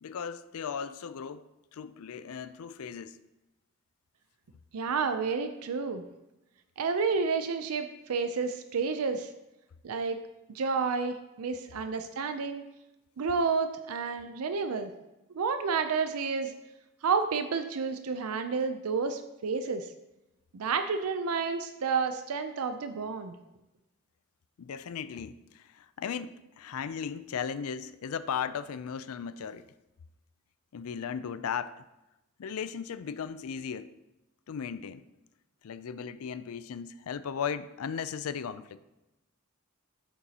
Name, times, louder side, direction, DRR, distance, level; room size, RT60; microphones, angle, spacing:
voice 1, 0.0-3.2 24.6-29.7 30.7-31.8 32.4-33.9 34.5-35.0 35.6-38.8, left 7 dB, 75° left, 0.4 m, -37 dB
voice 2, 4.7-6.0 6.8-9.3 9.8-10.2 10.5-12.6 13.2-14.9 15.3-16.5 17.0-19.9 20.5-23.3, right 5 dB, 85° right, 0.5 m, -30 dB
8.8 x 7.0 x 2.8 m
head